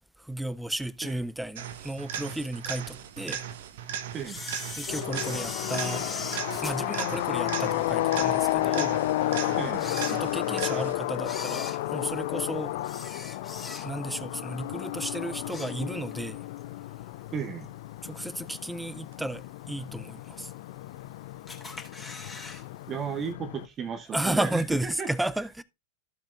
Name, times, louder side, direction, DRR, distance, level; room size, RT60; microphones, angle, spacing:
voice 1, 0.2-3.4 4.8-6.1 6.6-8.9 9.3-9.5 10.1-12.8 13.8-16.4 18.0-20.5 24.1-25.6, right 1 dB, 5° right, 0.6 m, -33 dB
sound 1, 1.5-11.2 19.1-19.2, right 8 dB, 55° right, 1.1 m, -37 dB
voice 2, 4.1-4.5 9.6-9.9 17.3-17.7 22.9-25.1, right 6 dB, 25° right, 0.9 m, -34 dB
Camera, 4.2-7.8 8.3-8.4 9.1-9.2 9.7-10.7 11.2-14.2 14.5-14.8 15.2-16.2 16.6-16.7 17.6-17.7 18.3-18.7 19.1-19.2 19.4-19.5 19.7-19.8 20.5-21.1 21.5-22.6 22.9-23.0 23.3-23.4, left 3 dB, 15° left, 2.8 m, -40 dB
sound 2, 4.9-23.7, left 16 dB, 50° left, 0.5 m, -32 dB
14.5 x 7.2 x 2.4 m
figure-of-eight pair, 90°, 0 cm